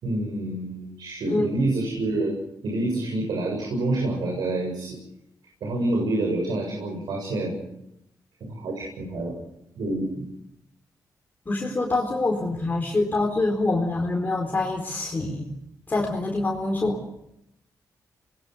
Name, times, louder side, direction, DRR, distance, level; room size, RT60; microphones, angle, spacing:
voice 1, 0.0-2.3 2.6-5.0 5.6-7.6 8.4-9.3 9.8-10.3, right 2 dB, 85° right, 0 dB, 7.6 m, -27 dB
voice 2, 11.5-15.5 15.9-17.0, left 2 dB, 25° left, 0 dB, 4.2 m, -25 dB
27.5 x 22.0 x 6.7 m, 0.80 s
cardioid pair, 105°, 7 cm